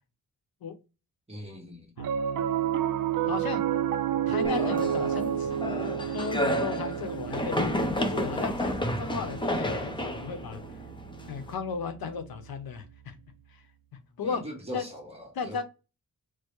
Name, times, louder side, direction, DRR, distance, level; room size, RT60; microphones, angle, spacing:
voice 1, 1.3-1.9 14.2-15.6, equal, 15° right, 1.1 m, -41 dB
Piano, 2.0-12.5, right 9 dB, 60° right, 0.5 m, -31 dB
voice 2, 3.3-3.6 4.3-5.6 6.1-10.6 11.3-13.2 13.5-13.6 14.2-14.4 14.7-14.8 15.4-15.6, left 5 dB, 80° left, 0.8 m, -35 dB
sound 1, 4.4-11.5, left 1 dB, 15° left, 0.5 m, -31 dB
4.5 x 2.1 x 3.0 m
wide cardioid pair, 160°, 36 cm